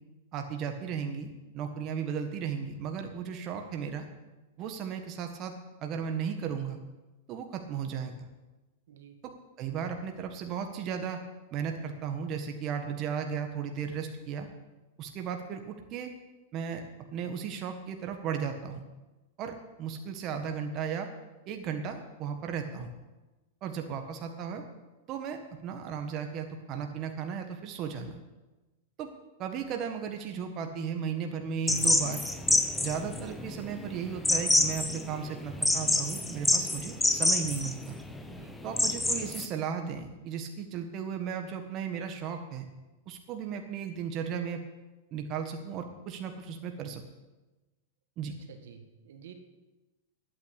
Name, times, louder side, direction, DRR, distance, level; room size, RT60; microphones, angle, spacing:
voice 1, 0.3-1.3 1.5-4.1 4.6-5.5 5.8-6.8 7.3-8.3 9.2-9.3 9.6-11.2 11.5-14.5 15.0-16.1 16.5-16.8 17.1-18.8 19.4-21.1 21.5-22.9 23.6-24.6 25.1-28.1 29.0-29.1 29.4-32.2 32.8-37.9 38.6-42.7 43.1-44.6 45.1-47.0 48.2-48.3, right 7 dB, 35° right, 5 dB, 1.4 m, -35 dB
sound 1, 31.7-39.5, left 2 dB, 5° left, 1.0 m, -27 dB
voice 2, 38.3-38.6 48.5-49.3, right 8 dB, 75° right, 6 dB, 1.8 m, -50 dB
11.5 x 9.0 x 8.2 m, 1.1 s
hypercardioid pair, 135°, 0 cm